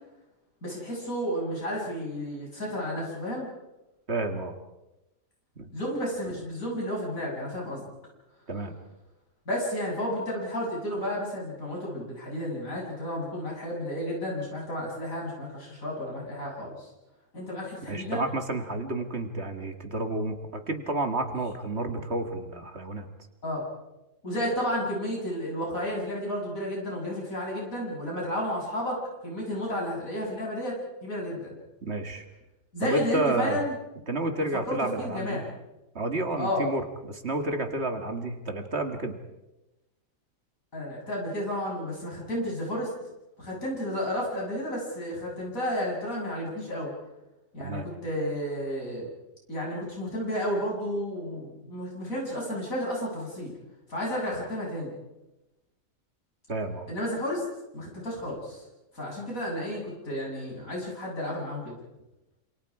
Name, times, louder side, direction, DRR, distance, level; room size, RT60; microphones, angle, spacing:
voice 1, 0.6-3.5 5.7-7.9 9.5-16.9 17.3-18.2 23.4-23.6 24.2-29.0 29.2-31.6 32.7-33.7 34.7-35.6 36.4-36.7 40.7-42.9 43.4-46.9 47.5-49.1 49.5-53.5 53.9-55.0 56.9-57.4 57.7-58.6 58.9-61.8, equal, 85° left, -2 dB, 8.3 m, -32 dB
voice 2, 4.1-4.5 5.6-5.7 8.5-8.7 17.9-23.1 31.8-32.2 32.8-33.6 34.1-35.4 35.9-39.2 47.6-47.9 56.5-56.9, right 2 dB, 50° right, 6 dB, 2.4 m, -30 dB
28.5 x 27.5 x 5.0 m, 0.99 s
omnidirectional pair, 1.4 m